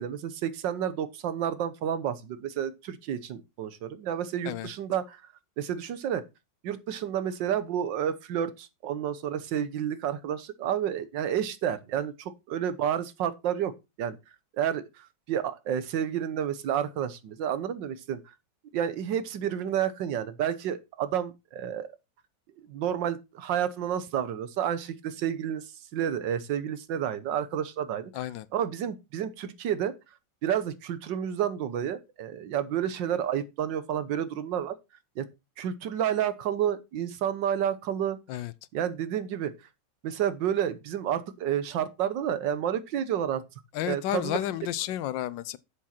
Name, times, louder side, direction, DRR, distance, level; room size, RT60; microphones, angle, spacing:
voice 1, 0.0-5.2 5.6-6.2 6.6-13.7 14.0-14.2 14.6-18.2 18.7-21.9 22.7-25.6 25.9-29.9 30.4-34.7 35.2-35.3 35.6-38.2 38.7-39.5 40.0-43.4 43.8-44.4, right 9 dB, 85° right, 1.6 m, -30 dB
voice 2, 28.1-28.5 38.3-38.5 43.7-45.6, left 12 dB, 90° left, 1.4 m, -31 dB
7.2 x 7.2 x 4.4 m
omnidirectional pair, 1.9 m